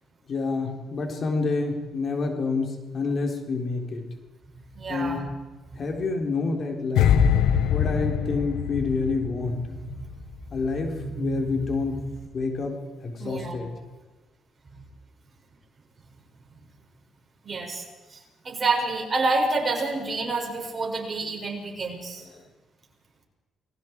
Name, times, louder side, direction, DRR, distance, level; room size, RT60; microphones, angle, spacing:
voice 1, 0.3-4.0 4.9-5.2 5.8-7.1 7.7-9.8 10.5-12.0 12.3-12.8 13.0-13.7, left 3 dB, 50° left, 2 dB, 4.0 m, -28 dB
voice 2, 4.7-5.2 9.7-10.1 11.0-12.0 13.2-13.5 14.7-14.8 17.4-22.3, right 3 dB, 35° right, 0 dB, 6.6 m, -29 dB
sound 1, 7.0-10.1 10.4-10.7, left 8 dB, 85° left, 1.1 m, -23 dB
30.0 x 22.0 x 4.8 m, 1.2 s
cardioid pair, 90°, 0 cm